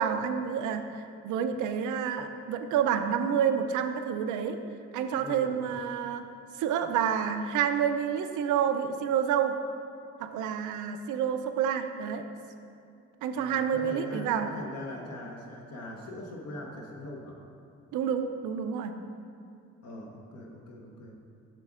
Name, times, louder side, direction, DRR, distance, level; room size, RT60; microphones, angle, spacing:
voice 1, 0.0-4.6 4.9-6.3 6.6-9.6 10.2-12.3 13.2-14.5 17.9-19.0, right 8 dB, 80° right, 8 dB, 0.5 m, -29 dB
voice 2, 5.1-5.6 13.3-17.4 19.8-21.2, left 1 dB, 55° left, -1 dB, 0.9 m, -41 dB
7.4 x 6.0 x 2.5 m, 2.5 s
cardioid pair, 90°, 30 cm